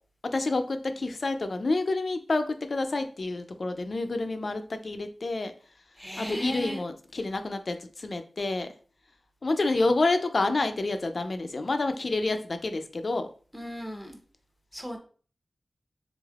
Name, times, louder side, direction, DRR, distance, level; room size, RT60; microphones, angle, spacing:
voice 1, 0.3-5.5 6.2-8.7 9.4-13.3, left 2 dB, 60° left, 8 dB, 0.4 m, -28 dB
voice 2, 6.0-6.8 13.5-14.2 14.7-15.0, equal, 5° left, 2 dB, 0.8 m, -35 dB
3.5 x 3.2 x 2.3 m, 0.42 s
cardioid pair, 50°, 0 cm